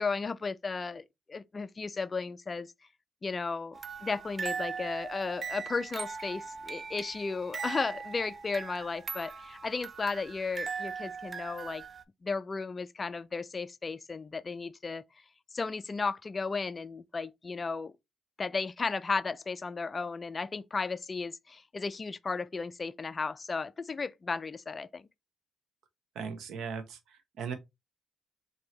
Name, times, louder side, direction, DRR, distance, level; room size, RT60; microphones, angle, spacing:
voice 1, 0.0-2.7 3.2-11.8 12.2-15.0 15.5-17.9 18.4-25.1, left 4 dB, 30° left, 0.3 m, -34 dB
sound 1, 3.7-12.0, right 5 dB, 40° right, 0.4 m, -40 dB
voice 2, 26.1-27.5, right 6 dB, 75° right, 0.9 m, -38 dB
4.2 x 2.7 x 3.1 m
cardioid pair, 90°, 0 cm